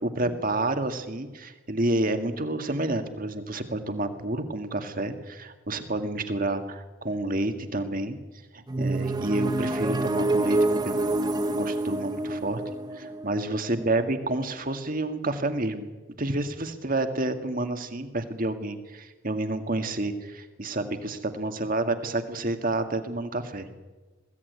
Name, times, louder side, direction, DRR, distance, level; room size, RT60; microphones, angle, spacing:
voice 1, 0.0-8.2 8.5-10.6 10.8-11.2 11.5-15.9 16.2-23.7, right 2 dB, 40° right, 7 dB, 1.9 m, -29 dB
sound 1, 8.7-14.4, right 2 dB, 20° right, 0.9 m, -27 dB
21.5 x 16.0 x 9.5 m, 1.2 s
head